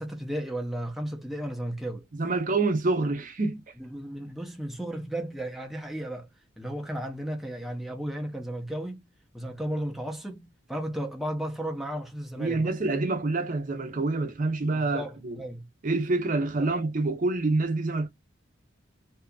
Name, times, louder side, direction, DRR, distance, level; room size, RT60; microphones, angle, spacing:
voice 1, 0.0-2.0 3.8-6.3 6.6-9.0 9.3-12.7 14.7-15.7 16.6-16.7, right 1 dB, ahead, 0.6 m, -34 dB
voice 2, 2.2-3.6 12.4-15.4 15.8-18.1, right 3 dB, 45° right, 0.6 m, -27 dB
2.7 x 2.4 x 2.3 m
head